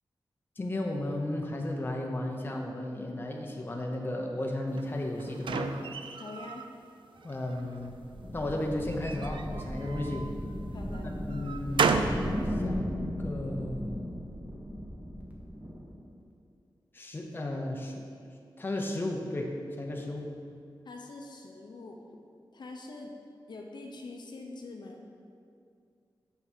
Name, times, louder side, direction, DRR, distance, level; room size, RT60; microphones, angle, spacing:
voice 1, 0.6-5.7 7.2-7.9 8.3-10.3 11.3-11.9 12.6-14.2 16.9-18.1 18.6-19.5 19.8-20.3, left 1 dB, 25° left, 1 dB, 0.8 m, -34 dB
sound 1, 4.8-6.7 7.2-7.9 8.9-10.4 10.9-12.3, right 5 dB, 80° right, 0.4 m, -33 dB
voice 2, 6.2-6.7 10.7-11.1 20.8-22.0 22.5-23.1 23.5-25.0, left 3 dB, 60° left, 2 dB, 0.9 m, -44 dB
sound 2, 7.9-16.1, equal, 20° right, 1.2 m, -36 dB
6.9 x 5.8 x 6.2 m, 2.4 s
wide cardioid pair, 140°, 8 cm